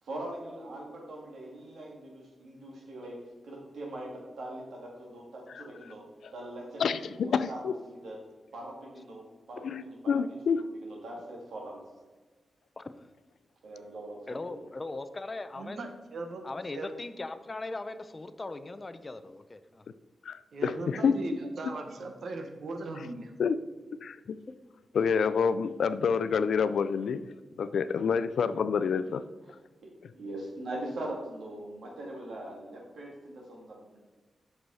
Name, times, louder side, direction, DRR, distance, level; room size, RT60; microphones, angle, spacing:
voice 1, 0.0-3.2 3.4-6.1 6.3-7.6 7.9-8.2 8.5-11.9 13.6-14.6 30.1-34.0, right 1 dB, 85° right, -1 dB, 2.3 m, -42 dB
voice 2, 6.8-7.7 9.6-10.6 20.3-21.1 23.4-23.6 24.0-24.4 24.9-27.2 27.6-29.2, left 6 dB, 80° left, 13 dB, 0.4 m, -28 dB
voice 3, 12.8-13.1 14.3-15.9 16.4-19.8, left 2 dB, 25° left, 11 dB, 0.5 m, -39 dB
voice 4, 15.6-16.5 16.7-16.9 20.5-23.3, right 2 dB, 70° right, 5 dB, 1.1 m, -38 dB
7.8 x 6.2 x 4.1 m, 1.3 s
wide cardioid pair, 125°, 0 cm